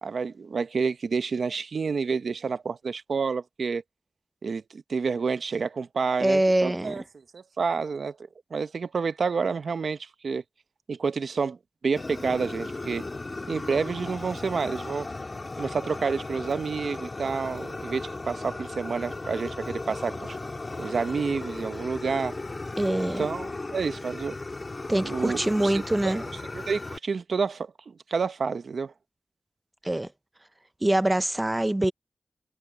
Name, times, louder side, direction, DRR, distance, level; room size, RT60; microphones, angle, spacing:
voice 1, 0.0-3.8 4.4-7.0 7.3-8.2 8.5-10.4 10.9-11.6 11.8-13.0 13.5-15.1 15.6-20.4 20.8-22.4 23.2-24.4 25.0-26.1 26.5-28.9, right 5 dB, 80° right, 0.7 m, -29 dB
voice 2, 6.2-7.0 22.8-23.3 24.9-26.2 29.8-30.1 30.8-31.9, right 1 dB, 20° right, 0.5 m, -24 dB
Fire, 12.0-27.0, left 2 dB, 35° left, 2.3 m, -36 dB
wide cardioid pair, 105°, 0 cm